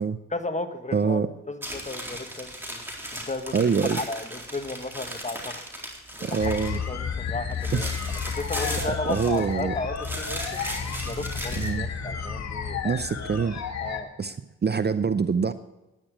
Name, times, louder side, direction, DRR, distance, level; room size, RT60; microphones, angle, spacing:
voice 1, 0.3-1.2 1.5-2.8 3.1-3.6 3.9-5.6 6.1-6.4 6.9-7.9 8.4-10.6 11.1-12.8 13.8-14.1, left 2 dB, 20° left, 8 dB, 1.4 m, -34 dB
voice 2, 0.9-1.3 3.5-4.0 6.2-6.8 7.7-8.0 9.1-9.7 11.5-11.9 12.8-13.6 14.2-14.4 14.6-15.5, right 5 dB, 30° right, 12 dB, 0.6 m, -25 dB
sound 1, 1.6-6.9 7.2-9.6 9.9-11.7, equal, 5° right, 3.9 m, -37 dB
sound 2, 6.4-14.0, left 6 dB, 55° left, 2.0 m, -32 dB
11.0 x 9.8 x 6.1 m, 1.0 s
supercardioid pair, 55°, 33 cm